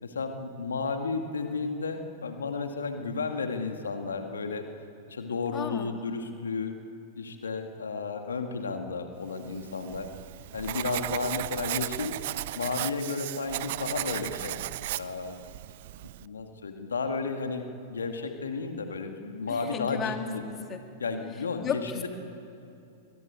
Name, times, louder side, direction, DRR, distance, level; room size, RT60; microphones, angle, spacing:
voice 1, 0.0-4.7 5.1-6.7 7.2-10.1 10.5-12.2 12.5-14.6 14.9-15.4 16.2-20.4 21.0-22.1, left 4 dB, 75° left, 5 dB, 2.1 m, -33 dB
voice 2, 5.5-5.9 19.5-20.8 21.6-22.1, left 7 dB, 25° left, 4 dB, 2.8 m, -34 dB
Writing, 9.5-16.3, right 15 dB, 55° right, 0.6 m, -35 dB
24.0 x 22.5 x 9.3 m, 2.7 s
figure-of-eight pair, 100°, 0 cm